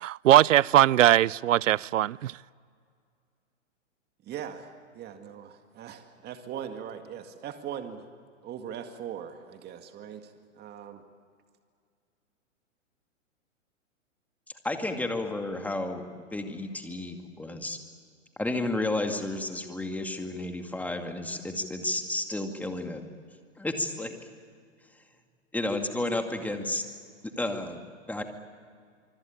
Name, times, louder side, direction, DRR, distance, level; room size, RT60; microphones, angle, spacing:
voice 1, 0.0-2.4, right 13 dB, 75° right, 0.6 m, -20 dB
voice 2, 4.2-8.1 8.4-11.0, right 8 dB, 25° right, 2.0 m, -40 dB
voice 3, 14.6-17.8 18.4-23.0 23.6-24.2 25.5-26.8 27.4-28.2, left 2 dB, 5° left, 2.3 m, -32 dB
25.0 x 25.0 x 8.7 m
hypercardioid pair, 120°, 38 cm